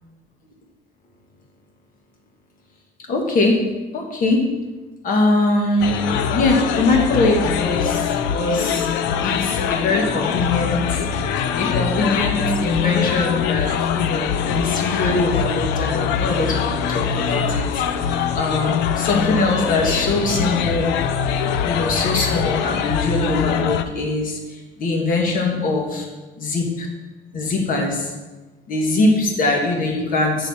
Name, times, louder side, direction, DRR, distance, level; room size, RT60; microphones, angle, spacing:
voice 1, 3.1-3.6 3.9-4.4 5.0-5.9 6.3-8.9 9.2-11.3 11.5-20.9 21.6-26.1 26.4-26.9 27.3-28.1 28.7-30.5, left 2 dB, 55° left, 1 dB, 1.7 m, -22 dB
sound 1, 5.8-23.8, left 7 dB, 90° left, 0.5 m, -23 dB
7.8 x 4.1 x 5.6 m, 1.2 s
cardioid pair, 110°, 17 cm